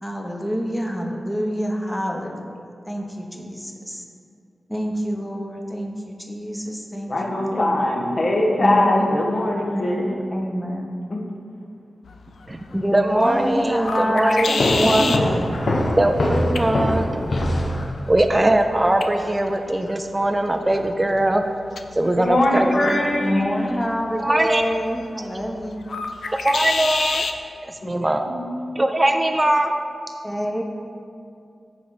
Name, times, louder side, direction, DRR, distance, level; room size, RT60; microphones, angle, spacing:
voice 1, 0.0-2.5 2.8-4.0 4.7-7.8 8.6-9.2 9.5-11.0 12.7-15.5 23.2-25.8 30.2-30.6, equal, 5° left, 1 dB, 1.0 m, -27 dB
voice 2, 7.1-10.1 11.1-11.2 22.2-23.4 27.8-27.9 28.3-28.4, left 1 dB, 50° left, -1 dB, 1.6 m, -21 dB
sound 1, 12.1-27.4, left 4 dB, 85° left, 0.5 m, -32 dB
voice 3, 12.9-15.3 16.0-17.1 18.1-21.4 22.0-23.0 24.2-24.8 26.4-27.3 27.6-28.3 28.8-29.7, right 1 dB, 20° right, 5 dB, 0.5 m, -21 dB
sound 2, 14.6-18.3, left 1 dB, 70° left, 1.2 m, -23 dB
14.0 x 4.9 x 4.1 m, 2.5 s
wide cardioid pair, 80°, 0 cm